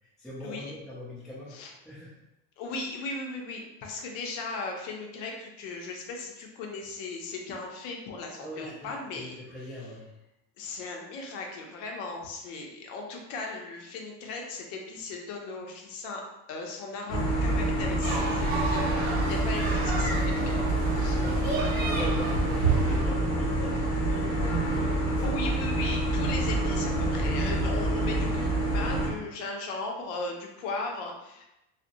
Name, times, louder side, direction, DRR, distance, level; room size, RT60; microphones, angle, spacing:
voice 1, 0.0-1.6 1.8-2.2 8.4-10.1 20.4-20.8 21.1-25.4 26.9-27.2, equal, ahead, -8 dB, 0.3 m, -42 dB
voice 2, 2.6-9.4 10.6-16.2 16.5-20.5 21.0-21.2 25.2-31.4, left 3 dB, 60° left, 1 dB, 0.6 m, -37 dB
sound 1, 17.1-29.1, right 1 dB, 30° left, 0.9 m, -27 dB
sound 2, 18.0-23.0, right 4 dB, 45° right, 0.6 m, -31 dB
2.6 x 2.0 x 2.5 m, 0.90 s
supercardioid pair, 140°, 41 cm